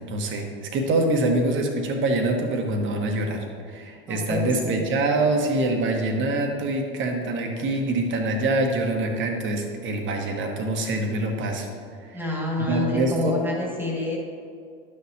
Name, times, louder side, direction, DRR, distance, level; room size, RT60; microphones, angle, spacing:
voice 1, 0.1-11.7 12.0-12.3 12.7-13.3, right 2 dB, 40° right, 3 dB, 1.3 m, -25 dB
voice 2, 4.1-4.8 12.1-14.2, left 2 dB, 5° right, -3 dB, 2.1 m, -28 dB
11.5 x 6.6 x 2.9 m, 2.2 s
figure-of-eight pair, 75°, 29 cm